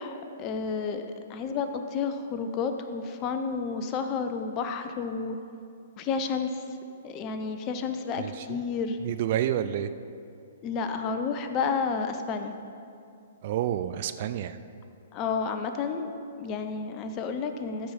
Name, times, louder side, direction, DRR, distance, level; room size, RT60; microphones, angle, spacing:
voice 1, 0.0-5.4 6.0-6.5 7.0-9.0 10.6-12.5 15.1-16.1 16.4-17.9, left 5 dB, 30° left, 7 dB, 0.7 m, -31 dB
voice 2, 8.2-8.6 9.0-9.9 13.4-14.6, right 11 dB, 45° right, 11 dB, 0.4 m, -29 dB
13.5 x 4.7 x 5.4 m, 2.5 s
figure-of-eight pair, 115°, 0 cm